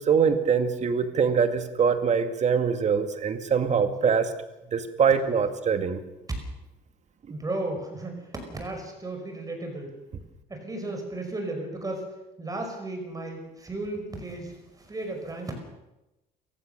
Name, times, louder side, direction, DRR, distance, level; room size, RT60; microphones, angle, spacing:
voice 1, 0.0-4.3 4.7-6.0, right 6 dB, 45° right, 8 dB, 2.3 m, -23 dB
voice 2, 7.3-9.9 10.5-12.1 12.4-14.6 14.9-15.5, right 2 dB, 20° right, 3 dB, 5.5 m, -34 dB
27.0 x 15.5 x 6.8 m, 0.98 s
cardioid pair, 110°, 17 cm